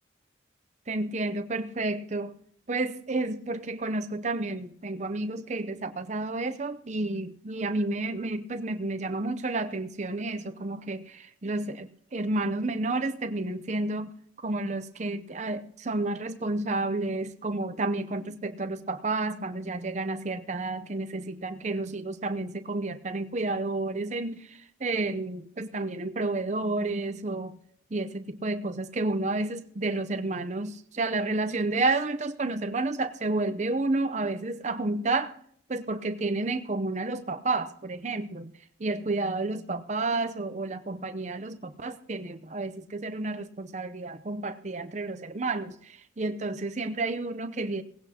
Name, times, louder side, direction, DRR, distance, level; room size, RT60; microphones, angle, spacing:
voice 1, 0.9-2.3 2.7-14.1 14.4-27.6 27.9-35.4 35.7-38.5 38.8-47.8, right 2 dB, 40° right, 10 dB, 0.6 m, -31 dB
18.5 x 16.0 x 2.9 m, 0.65 s
head